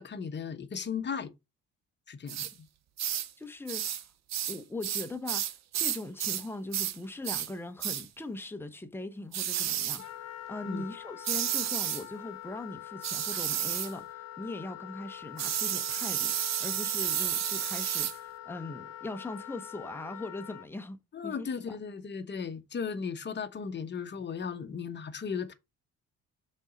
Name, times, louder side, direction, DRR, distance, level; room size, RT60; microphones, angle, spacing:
voice 1, 0.0-1.3 2.1-2.5 10.6-10.8 21.1-25.5, left 6 dB, 35° left, 1.0 m, -36 dB
sound 1, 2.3-2.5 3.0-3.3 3.7-4.0 4.3-6.5 6.7-7.0 7.2-7.5 7.8-8.1 9.3-10.0 11.2-12.0 13.0-13.9 15.4-18.2, right 10 dB, 60° right, 0.9 m, -31 dB
voice 2, 3.4-3.9 4.5-21.8, left 2 dB, 5° left, 0.9 m, -40 dB
Wind instrument woodwind instrument, 10.0-20.7, left 11 dB, 60° left, 0.7 m, -45 dB
5.3 x 4.1 x 5.1 m
cardioid pair, 90°, 30 cm